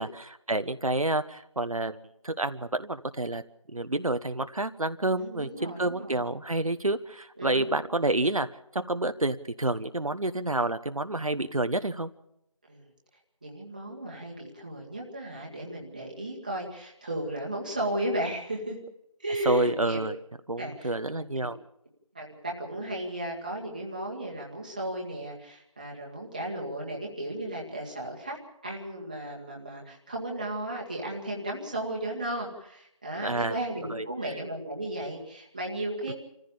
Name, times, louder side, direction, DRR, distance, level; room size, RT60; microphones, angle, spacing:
voice 1, 0.0-2.0 2.2-3.4 3.7-8.5 8.7-12.1 19.4-20.1 20.5-21.6 33.2-33.6 33.9-34.0 36.1-36.2, right 2 dB, 75° right, 10 dB, 1.1 m, -29 dB
voice 2, 5.2-6.2 7.4-7.7 12.7-12.8 13.4-18.8 19.2-20.0 20.6-21.2 22.1-28.4 28.6-36.1, right 1 dB, 15° right, -1 dB, 1.7 m, -35 dB
27.0 x 15.0 x 7.0 m, 0.78 s
figure-of-eight pair, 175°, 18 cm